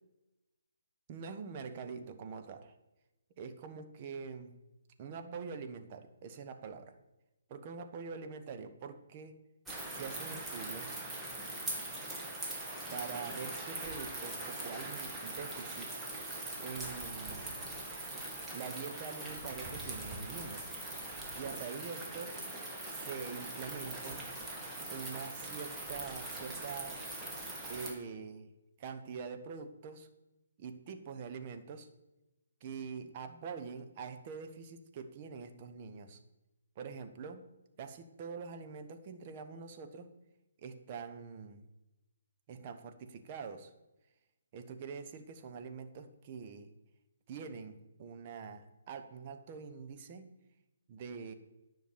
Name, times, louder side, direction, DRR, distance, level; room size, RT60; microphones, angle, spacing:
voice 1, 1.1-2.7 3.4-4.5 5.0-7.0 7.5-9.4 9.9-10.9 12.9-15.9 16.6-17.5 18.5-20.7 21.3-22.3 22.9-24.3 24.9-27.0 27.7-28.5 28.8-30.1 30.6-31.9 32.6-36.2 36.8-37.5 37.8-40.1 40.6-41.7 42.5-43.7 44.5-46.7 47.3-50.3 50.9-51.3, right 5 dB, 35° right, 7 dB, 1.2 m, -44 dB
sound 1, 9.7-27.9, right 2 dB, 10° right, 2.0 m, -42 dB
10.5 x 6.0 x 8.8 m, 0.99 s
figure-of-eight pair, 140°, 0 cm